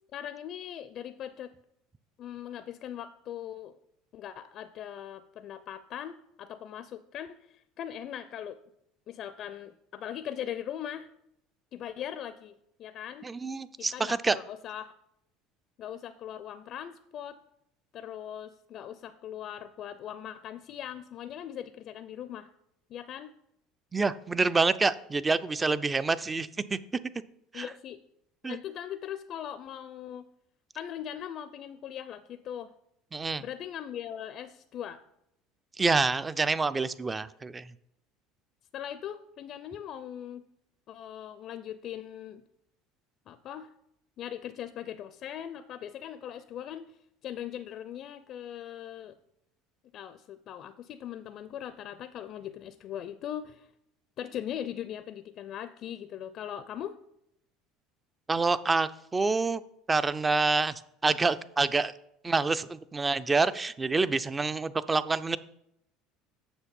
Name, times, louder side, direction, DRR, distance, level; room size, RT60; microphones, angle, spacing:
voice 1, 0.1-1.5 2.2-3.8 4.1-8.6 9.1-11.1 11.7-13.3 13.8-14.9 15.8-17.4 17.9-22.5 22.9-23.3 27.5-28.0 28.4-30.3 30.7-32.7 33.4-35.0 38.7-40.4 40.9-42.4 43.3-43.7 44.2-49.2 49.9-53.7 54.2-57.0, left 10 dB, 50° left, 13 dB, 0.4 m, -40 dB
voice 2, 13.2-14.4 23.9-26.8 27.5-27.7 28.4-28.6 33.1-33.4 35.8-37.7 58.3-59.6 59.9-60.7 61.0-61.9 62.2-65.4, right 3 dB, 20° right, 15 dB, 0.4 m, -27 dB
7.2 x 6.2 x 5.3 m, 0.78 s
supercardioid pair, 100°, 0 cm